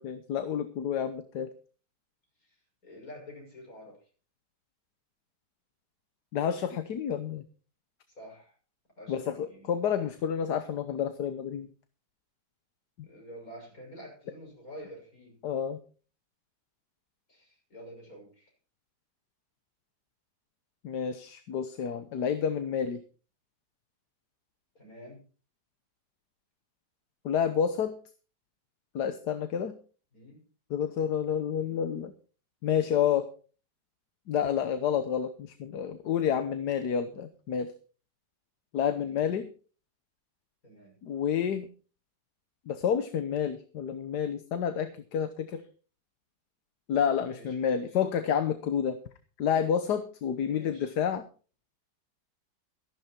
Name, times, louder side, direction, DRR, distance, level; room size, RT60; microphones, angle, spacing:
voice 1, 0.0-1.5 6.3-7.4 9.1-11.7 13.0-13.1 15.4-15.8 20.8-23.0 27.2-28.0 28.9-29.8 30.7-32.1 32.6-33.3 34.3-37.7 38.7-39.5 41.0-41.7 42.7-45.6 46.9-49.0 49.4-51.2, left 8 dB, 75° left, 10 dB, 1.5 m, -29 dB
voice 2, 2.8-4.0 8.1-8.5 9.0-9.7 13.0-15.4 17.3-18.5 24.7-25.2 30.1-30.5 31.5-31.8 39.0-39.3 40.6-41.0 47.2-47.5 50.4-50.9, equal, 55° left, 1 dB, 6.7 m, -48 dB
14.0 x 11.5 x 4.4 m, 0.38 s
omnidirectional pair, 1.8 m